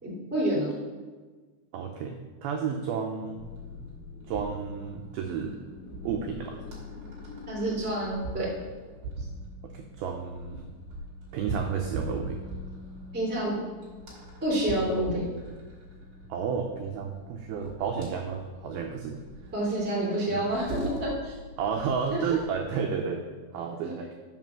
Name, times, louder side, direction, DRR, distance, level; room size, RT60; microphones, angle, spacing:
voice 1, 0.0-0.7 7.5-8.5 9.2-9.3 13.1-13.5 14.4-15.2 19.5-21.3 22.1-22.3, right 1 dB, 5° right, -5 dB, 0.8 m, -28 dB
voice 2, 1.7-3.5 4.3-5.6 6.0-6.6 9.6-10.7 11.3-12.4 16.3-19.2 20.3-20.4 21.6-23.2 23.5-24.1, right 6 dB, 90° right, 3 dB, 2.1 m, -32 dB
sound 1, 3.2-8.5, left 3 dB, 30° left, 2.4 m, -49 dB
sound 2, 3.4-22.7, right 1 dB, 45° right, 3.1 m, -42 dB
7.3 x 5.8 x 6.1 m, 1.4 s
omnidirectional pair, 5.1 m